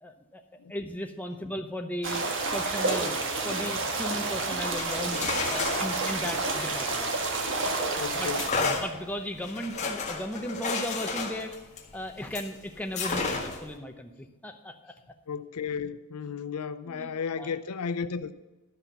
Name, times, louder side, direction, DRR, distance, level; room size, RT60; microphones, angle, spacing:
voice 1, 0.0-0.4 0.7-3.2 3.4-7.1 8.1-8.3 8.6-11.5 11.9-14.9 16.9-17.1 17.4-17.5, equal, 5° left, 0.8 m, -36 dB
sound 1, 2.0-8.5, right 3 dB, 55° right, 1.4 m, -29 dB
sound 2, 4.7-7.7 8.3-12.5 12.9-13.7, left 4 dB, 30° left, 1.5 m, -33 dB
voice 2, 7.6-8.6 15.3-18.3, left 6 dB, 85° left, 0.5 m, -34 dB
12.5 x 5.9 x 6.8 m
head